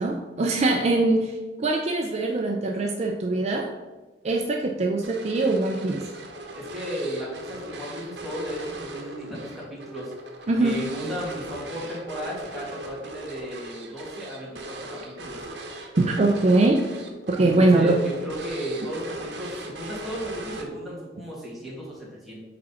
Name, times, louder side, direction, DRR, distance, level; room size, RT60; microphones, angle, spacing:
voice 1, 0.0-1.3 1.6-3.7 4.2-6.0 10.5-10.8 16.0-16.8 17.3-18.0, right 2 dB, 40° right, 2 dB, 0.5 m, -22 dB
sound 1, 5.0-21.0, right 2 dB, 70° right, 1.0 m, -39 dB
voice 2, 6.5-10.1 10.6-15.4 17.4-22.4, equal, ahead, -7 dB, 2.1 m, -34 dB
5.1 x 4.2 x 5.6 m, 1.2 s
head